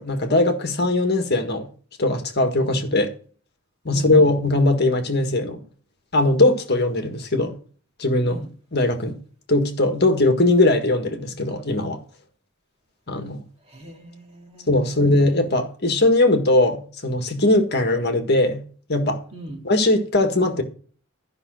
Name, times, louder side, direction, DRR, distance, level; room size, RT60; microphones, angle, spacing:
voice 1, 0.0-1.7 2.0-3.1 3.8-5.6 6.1-7.6 8.0-8.4 8.7-9.2 9.5-12.0 13.1-13.4 14.7-18.6 18.9-19.2 19.6-20.6, left 2 dB, 50° left, 1.7 m, -20 dB
voice 2, 3.9-4.3 8.2-8.5 13.7-15.5 19.3-19.6, right 1 dB, 30° right, 2.3 m, -39 dB
13.0 x 5.8 x 6.3 m
head